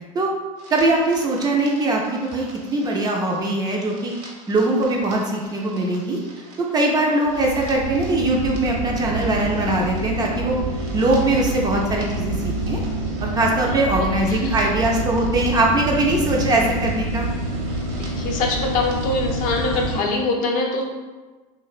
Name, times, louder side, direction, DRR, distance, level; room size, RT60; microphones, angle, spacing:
sound 1, 0.6-20.0, right 2 dB, 65° right, 0.7 m, -28 dB
voice 1, 0.7-4.1 4.5-6.2 6.6-10.6 10.9-12.8 13.2-17.3, right 2 dB, 20° right, -1 dB, 0.3 m, -21 dB
voice 2, 13.7-14.6 18.0-20.8, left 3 dB, 50° left, 0 dB, 0.5 m, -24 dB
2.6 x 2.1 x 2.4 m, 1.3 s
hypercardioid pair, 95°, 18 cm